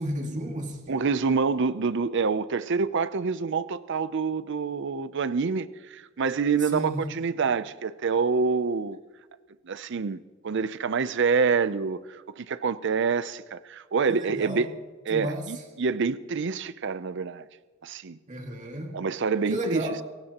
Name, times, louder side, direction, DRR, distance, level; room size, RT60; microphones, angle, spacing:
voice 1, 0.0-1.0 6.6-7.1 14.1-14.7 15.1-15.5 18.3-19.0 19.5-20.0, right 1 dB, 40° right, 2.1 m, -32 dB
voice 2, 0.9-9.0 9.7-14.7 15.1-17.4 17.8-18.2 18.9-20.0, right 5 dB, 60° right, 0.5 m, -27 dB
27.5 x 16.5 x 3.0 m
head